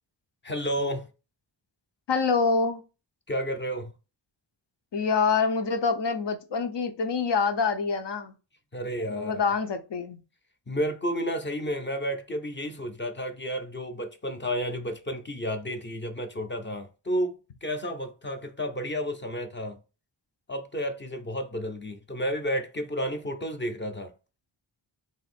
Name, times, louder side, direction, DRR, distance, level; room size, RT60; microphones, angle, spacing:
voice 1, 0.4-1.1 3.3-3.9 8.7-9.4 10.7-19.8 20.5-24.1, equal, 25° left, 0.6 m, -31 dB
voice 2, 2.1-2.8 4.9-8.3 9.1-10.2, left 5 dB, 70° left, 0.7 m, -26 dB
3.5 x 2.6 x 4.1 m
wide cardioid pair, 145°, 44 cm